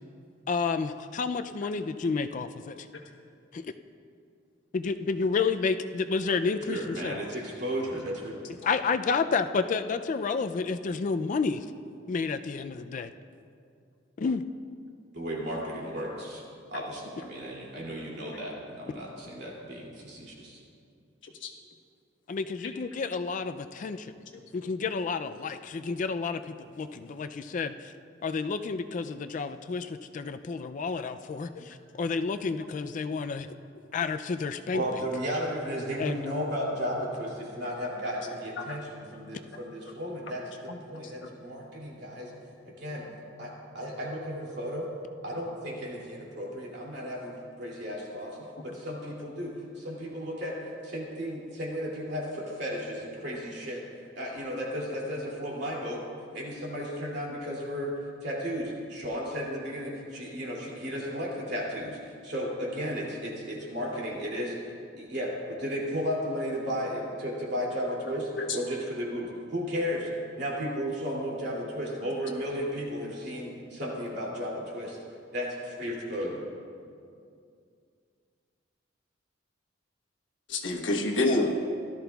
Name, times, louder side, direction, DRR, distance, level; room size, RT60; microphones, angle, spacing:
voice 1, 0.5-2.8 3.5-3.7 4.7-7.2 8.6-11.6 12.1-13.1 14.2-14.4 22.3-24.1 24.5-27.9 28.2-33.5 33.9-34.8 36.0-36.2, left 4 dB, 40° left, 9 dB, 0.3 m, -30 dB
voice 2, 6.6-8.6 15.1-16.4 16.7-20.6 34.7-42.3 42.8-43.1 43.4-44.9 45.2-48.4 48.6-50.5 50.8-53.8 54.2-56.0 56.3-57.9 58.2-64.5 65.0-70.1 70.4-75.0 75.3-76.4, equal, 60° right, -4 dB, 2.6 m, -34 dB
voice 3, 80.5-81.5, left 2 dB, 70° left, 2 dB, 1.2 m, -27 dB
17.0 x 13.0 x 2.3 m, 2.4 s
head